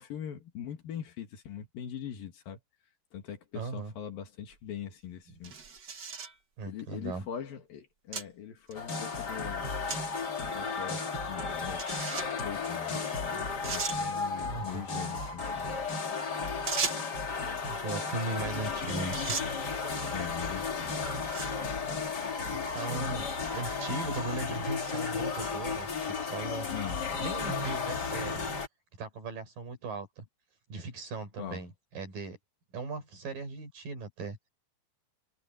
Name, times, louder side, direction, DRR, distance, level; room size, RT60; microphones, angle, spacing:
voice 1, 0.0-2.6 3.1-5.5 6.6-9.7 10.5-11.8 12.4-15.8 20.1-21.1 26.7-27.0 31.4-31.6, left 9 dB, 80° left, 3.9 m, -42 dB
voice 2, 3.5-3.9 5.3-5.4 6.6-7.3 14.5-14.8 17.7-19.4 22.5-26.7 27.2-28.5 29.0-30.3 30.7-32.4 32.7-34.5, right 3 dB, 75° right, 6.5 m, -38 dB
sound 1, 4.5-4.6 5.4-6.4 7.2-7.3 8.1-8.3 8.7-8.8 9.9-10.0 10.4-10.5 11.8-12.4 13.1-13.2 13.6-14.0 16.7-17.2 18.6-18.8 19.1-19.5 20.3-20.5 21.1-21.6, right 5 dB, 35° right, 2.0 m, -36 dB
sound 2, 8.7-28.7, left 4 dB, 30° left, 2.7 m, -34 dB
omnidirectional pair, 4.0 m